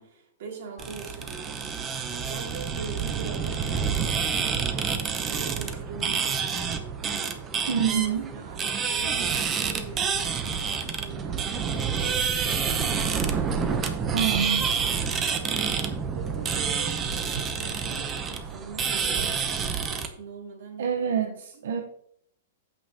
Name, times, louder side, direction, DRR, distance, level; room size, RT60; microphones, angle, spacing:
voice 1, 0.0-4.9 5.3-7.3 7.8-13.5 15.2-15.8 16.1-21.6, right 5 dB, 55° right, 0 dB, 2.6 m, -43 dB
sound 1, 0.8-20.1, right 6 dB, 15° right, 0.7 m, -28 dB
voice 2, 7.7-8.2 14.1-14.7 20.8-21.8, right 7 dB, 75° right, 3 dB, 0.9 m, -26 dB
15.0 x 5.6 x 2.9 m, 0.70 s
hypercardioid pair, 165°, 0 cm